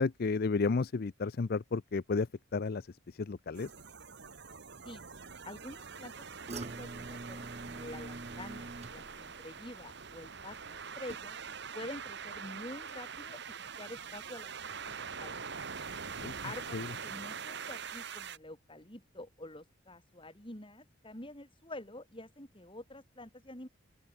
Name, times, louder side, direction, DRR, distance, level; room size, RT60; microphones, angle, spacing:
voice 1, 0.0-2.9 3.2-3.7 16.2-16.3 16.7-16.9, left 4 dB, 50° left, 0.5 m, -32 dB
sound 1, 3.5-18.4, right 6 dB, 55° right, 2.0 m, -44 dB
voice 2, 5.4-6.3 6.5-11.4 11.7-13.4 13.8-15.4 16.4-23.7, left 1 dB, 25° left, 5.3 m, -47 dB
sound 2, 6.5-11.7 12.0-12.5 12.9-13.0, right 2 dB, 30° right, 0.9 m, -47 dB
open air
head